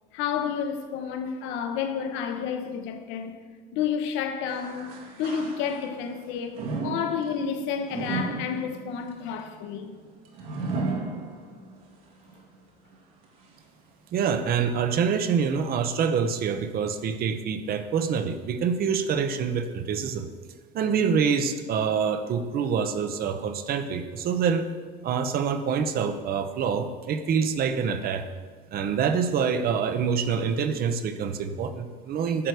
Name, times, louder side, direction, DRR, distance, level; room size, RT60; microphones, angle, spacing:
voice 1, 0.1-3.4 3.7-9.9, left 7 dB, 70° left, 1.2 m, -30 dB
sound 1, 4.5-6.1 6.5-11.8 12.3-12.4 13.2-13.3, right 3 dB, 70° right, 2.2 m, -34 dB
voice 2, 14.1-20.3 20.7-24.7 25.0-28.3 28.7-32.5, right 6 dB, 45° right, 0.9 m, -26 dB
11.0 x 6.6 x 4.9 m
supercardioid pair, 100°, 21 cm